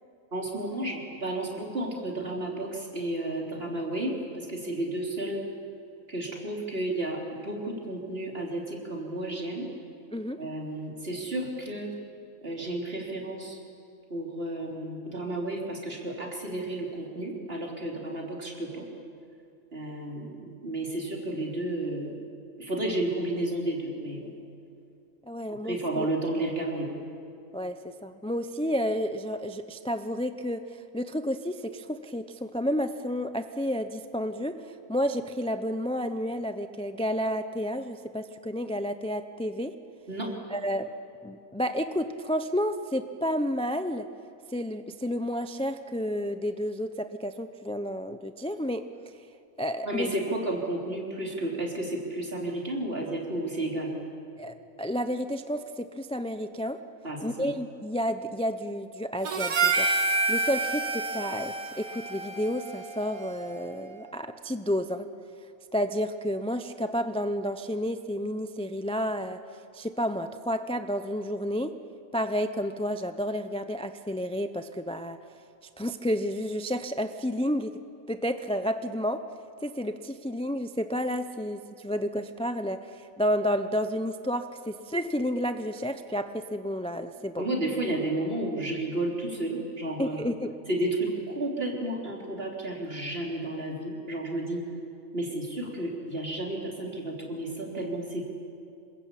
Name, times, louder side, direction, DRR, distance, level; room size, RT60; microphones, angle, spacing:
voice 1, 0.3-5.4 6.1-9.7 10.4-11.9 12.4-13.6 14.1-18.9 19.7-22.1 22.6-24.3 25.6-26.9 40.1-40.3 49.8-53.9 57.0-57.5 87.4-90.2 90.7-94.6 95.1-98.3, right 1 dB, 45° right, -1 dB, 4.1 m, -32 dB
voice 2, 10.1-10.4 25.3-26.1 27.5-39.8 40.5-40.9 41.2-44.1 44.5-48.9 49.6-50.1 54.4-56.8 57.2-59.9 60.3-65.1 65.7-69.4 69.7-71.8 72.1-75.2 75.8-77.7 78.1-79.3 79.6-87.4 90.0-90.5, equal, 5° left, 9 dB, 0.4 m, -31 dB
Harmonica, 59.2-63.7, right 3 dB, 80° right, 2.0 m, -29 dB
27.0 x 21.5 x 8.6 m, 2.6 s
omnidirectional pair, 1.4 m